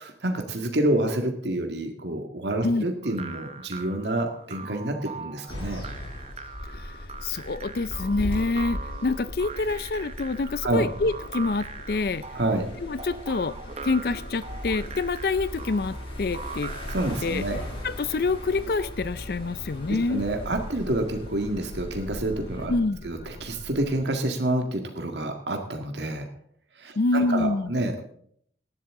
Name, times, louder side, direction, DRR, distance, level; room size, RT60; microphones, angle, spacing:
voice 1, 0.0-5.8 10.6-10.9 12.3-12.7 16.9-17.6 19.9-22.7 23.0-26.3 26.8-28.1, right 1 dB, 75° right, 4 dB, 1.9 m, -28 dB
sound 1, 3.0-17.2, right 5 dB, 35° right, 0.8 m, -41 dB
sound 2, 5.5-22.7, left 1 dB, 30° left, 7.3 m, -40 dB
sound 3, 6.6-24.1, left 1 dB, 80° left, 1.4 m, -42 dB
voice 2, 6.7-12.2 12.8-13.5 13.8-16.7 17.2-17.4 17.8-20.2 22.7-23.0 27.0-27.7, left 3 dB, 55° left, 15 dB, 0.4 m, -27 dB
18.5 x 12.0 x 3.7 m, 0.63 s
head